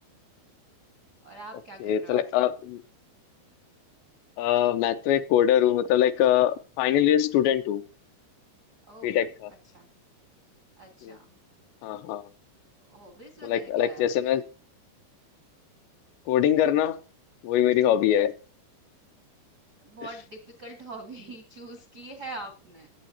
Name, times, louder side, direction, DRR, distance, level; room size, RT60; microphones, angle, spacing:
voice 1, 1.2-2.2 8.9-9.1 9.6-9.9 10.8-11.3 12.8-14.4 19.8-22.9, right 2 dB, 65° right, 3 dB, 0.9 m, -43 dB
voice 2, 1.8-2.8 4.4-7.8 9.0-9.5 11.0-11.2 11.8-12.3 13.4-14.4 16.3-17.0 17.4-18.3, left 11 dB, 80° left, 10 dB, 2.7 m, -23 dB
21.5 x 8.5 x 2.8 m, 0.35 s
omnidirectional pair, 5.3 m